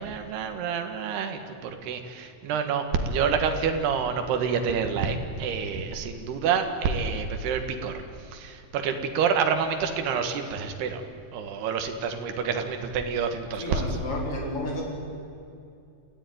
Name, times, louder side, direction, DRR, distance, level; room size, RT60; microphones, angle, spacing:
voice 1, 0.0-7.9 8.3-11.0 11.3-13.9, right 6 dB, 75° right, 6 dB, 3.6 m, -28 dB
voice 2, 13.6-14.8, left 1 dB, 35° left, -1 dB, 5.2 m, -32 dB
28.0 x 15.5 x 9.4 m, 2.6 s
omnidirectional pair, 4.7 m